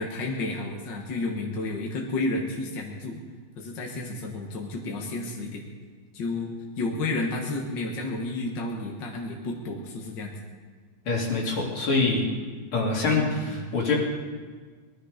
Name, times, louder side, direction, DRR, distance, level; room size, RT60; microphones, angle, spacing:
voice 1, 0.0-3.2 3.6-5.6 6.1-6.5 6.8-10.3 13.0-13.6, left 2 dB, 60° left, 0 dB, 2.0 m, -31 dB
voice 2, 11.1-12.3 12.7-14.0, left 3 dB, 80° left, -2 dB, 3.4 m, -25 dB
20.5 x 12.5 x 5.1 m, 1.5 s
omnidirectional pair, 2.3 m